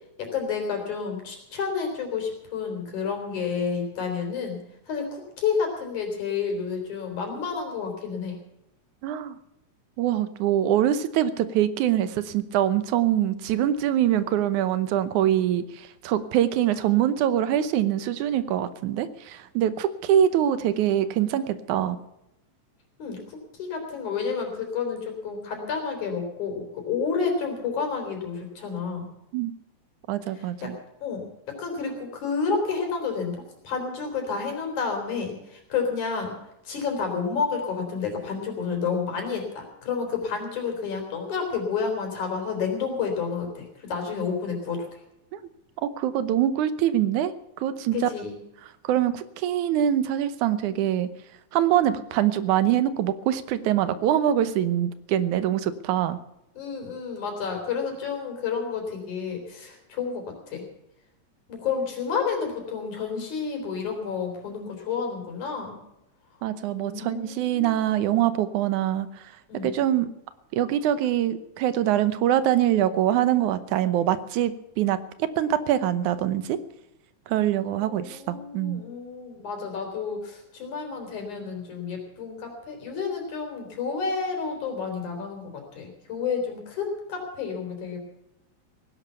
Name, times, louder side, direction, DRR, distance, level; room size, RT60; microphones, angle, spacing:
voice 1, 0.2-4.6 4.9-8.4 23.0-29.1 30.3-30.7 31.0-36.3 36.7-44.9 47.9-48.4 56.6-60.6 61.5-65.8 66.7-68.2 69.5-69.8 77.8-88.0, left 5 dB, 80° left, 3 dB, 5.2 m, -30 dB
voice 2, 9.0-9.4 10.0-22.0 29.3-29.5 30.1-30.8 45.3-45.4 45.8-47.3 47.6-48.1 48.8-51.1 51.5-56.2 66.4-69.1 69.6-70.1 70.5-76.6 77.3-78.8, right 11 dB, 90° right, 14 dB, 2.4 m, -24 dB
17.5 x 11.0 x 6.9 m, 0.87 s
omnidirectional pair, 3.3 m